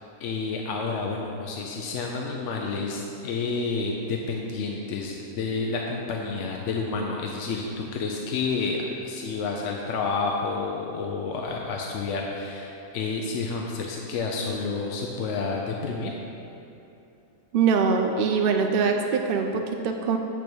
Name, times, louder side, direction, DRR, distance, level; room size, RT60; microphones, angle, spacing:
voice 1, 0.2-16.1, left 4 dB, 65° left, 0 dB, 0.9 m, -30 dB
voice 2, 17.5-20.2, right 5 dB, 75° right, 3 dB, 0.5 m, -23 dB
9.0 x 3.4 x 6.0 m, 2.9 s
omnidirectional pair, 1.5 m